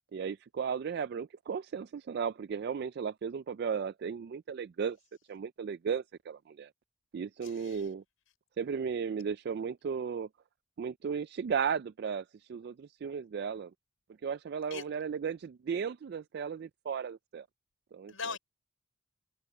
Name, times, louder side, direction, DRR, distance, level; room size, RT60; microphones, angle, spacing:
voice 1, 0.1-5.0 5.3-6.7 7.1-8.0 8.6-10.3 10.8-13.7 14.2-17.5 17.9-18.1, right 6 dB, 50° right, 0.3 m, -35 dB
voice 2, 7.4-7.8 14.7-14.8 18.1-18.4, left 5 dB, 80° left, 4.5 m, -40 dB
head